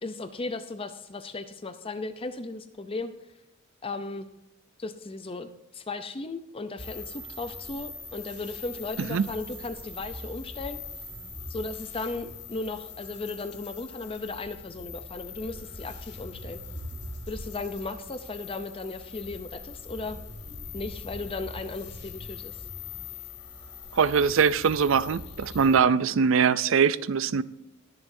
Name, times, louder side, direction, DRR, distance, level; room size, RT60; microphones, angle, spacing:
voice 1, 0.0-3.1 3.8-4.3 4.8-10.8 11.5-16.6 17.3-20.2 20.7-22.6, left 3 dB, 25° left, 0.6 m, -36 dB
sound 1, 6.8-25.8, left 3 dB, 55° left, 2.3 m, -42 dB
voice 2, 23.9-27.4, right 6 dB, 65° right, 0.4 m, -22 dB
20.0 x 7.2 x 2.7 m
head